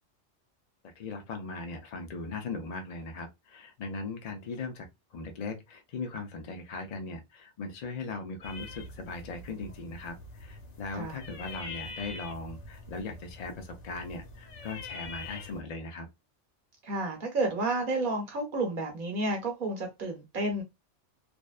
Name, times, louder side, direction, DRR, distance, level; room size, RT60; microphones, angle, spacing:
voice 1, 0.8-16.1, left 3 dB, 60° left, 0.4 m, -39 dB
sound 1, 8.4-15.6, left 3 dB, 75° left, 1.1 m, -45 dB
voice 2, 16.8-20.6, right 2 dB, 45° right, 1.0 m, -31 dB
2.5 x 2.1 x 2.3 m
omnidirectional pair, 1.3 m